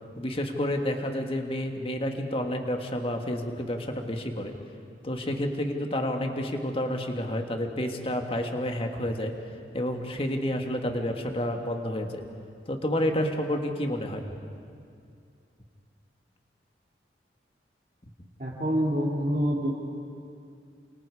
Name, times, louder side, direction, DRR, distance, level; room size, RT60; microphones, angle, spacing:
voice 1, 0.2-4.6 5.0-9.3 9.7-12.2 12.7-14.4, left 1 dB, 30° left, 4 dB, 1.8 m, -30 dB
voice 2, 18.4-19.7, equal, 45° right, -6 dB, 2.6 m, -26 dB
29.0 x 27.5 x 4.9 m, 2.4 s
head